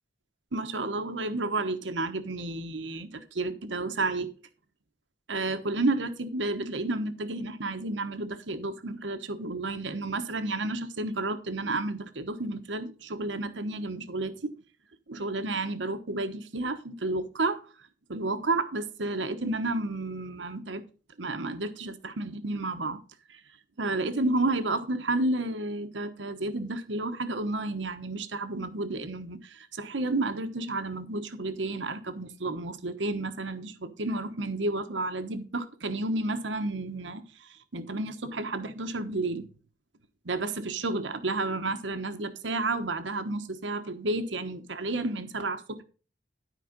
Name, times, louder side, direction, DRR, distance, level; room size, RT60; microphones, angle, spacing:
voice 1, 0.5-4.3 5.3-14.5 15.1-17.6 18.1-20.8 21.2-23.0 23.3-23.4 23.8-39.5 40.2-45.8, right 2 dB, 80° right, 1.2 m, -31 dB
12.5 x 5.0 x 5.1 m
head